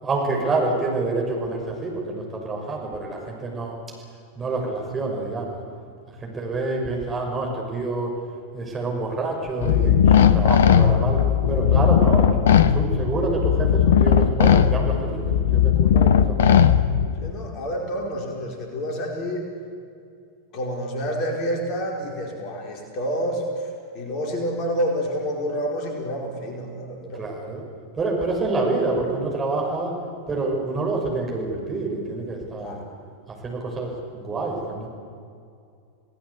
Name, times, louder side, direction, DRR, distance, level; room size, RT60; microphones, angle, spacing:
voice 1, 0.0-3.8 4.4-5.6 6.1-8.1 8.5-11.2 11.5-12.4 12.7-16.6 27.2-27.6 27.9-29.9 30.3-32.8 33.3-34.9, right 3 dB, 20° right, -1 dB, 6.2 m, -27 dB
sound 1, 9.6-17.3, left 8 dB, 60° left, 0.9 m, -18 dB
voice 2, 17.2-19.4 20.5-23.7 23.9-27.2 32.6-32.8, equal, 40° left, 1 dB, 4.6 m, -28 dB
28.5 x 18.0 x 8.3 m, 2.4 s
figure-of-eight pair, 90°, 0 cm